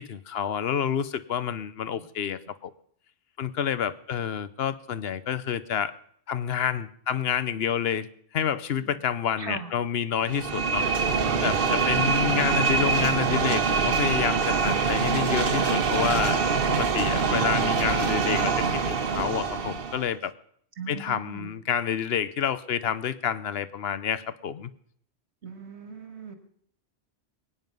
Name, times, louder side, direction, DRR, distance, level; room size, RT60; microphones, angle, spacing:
voice 1, 0.0-2.7 3.4-5.9 6.3-8.1 8.3-10.9 11.4-20.3 20.9-24.7, left 8 dB, 65° left, 15 dB, 1.0 m, -29 dB
voice 2, 9.4-9.7 20.8-21.5 25.4-26.3, right 5 dB, 80° right, 7 dB, 2.2 m, -40 dB
sound 1, 10.2-20.1, right 5 dB, 55° right, 1.2 m, -24 dB
22.0 x 9.6 x 5.4 m, 0.64 s
omnidirectional pair, 1.1 m